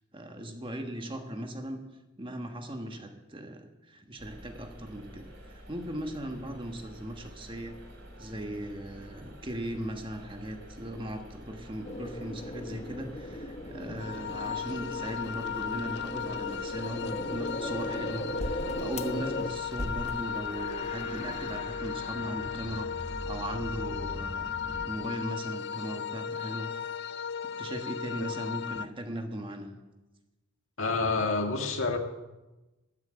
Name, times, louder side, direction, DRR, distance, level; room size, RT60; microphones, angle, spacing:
voice 1, 0.1-1.9 2.2-7.9 8.2-22.9 23.2-26.7 27.4-29.8, right 1 dB, 25° right, 4 dB, 1.4 m, -38 dB
sound 1, 4.2-21.6, equal, 55° right, 4.5 m, -49 dB
sound 2, 11.8-19.5 19.8-24.9, left 1 dB, 30° left, 1.0 m, -39 dB
sound 3, 14.0-28.8, left 7 dB, 55° left, 0.4 m, -36 dB
voice 2, 30.8-32.0, left 3 dB, 70° left, 3 dB, 1.9 m, -28 dB
13.0 x 9.4 x 8.1 m, 1.1 s
head